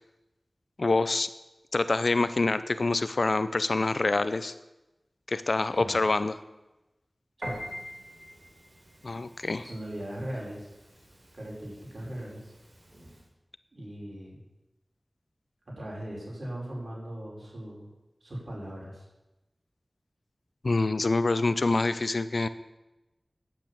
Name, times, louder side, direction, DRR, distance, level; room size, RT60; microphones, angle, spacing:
voice 1, 0.8-1.3 1.7-4.5 5.3-6.4 9.0-9.6 20.6-22.5, left 3 dB, 70° left, 13 dB, 0.6 m, -26 dB
Piano, 7.4-13.3, equal, 50° right, 4.4 m, -45 dB
voice 2, 9.6-10.7 11.3-12.5 13.7-14.4 15.8-17.9 18.2-19.0, right 1 dB, 75° right, -4 dB, 5.4 m, -39 dB
10.0 x 9.2 x 8.6 m, 1.0 s
wide cardioid pair, 50°, 0 cm